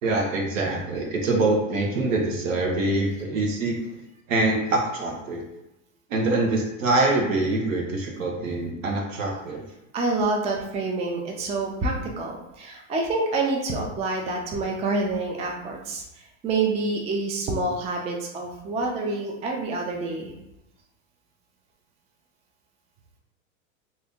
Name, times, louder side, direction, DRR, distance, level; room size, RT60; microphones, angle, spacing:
voice 1, 0.0-3.7 4.3-5.4 6.1-9.6, right 2 dB, 75° right, 0 dB, 1.1 m, -24 dB
voice 2, 9.9-16.0 16.4-20.3, right 3 dB, 15° right, 0 dB, 0.4 m, -27 dB
2.8 x 2.7 x 3.5 m, 0.91 s
hypercardioid pair, 115°, 40 cm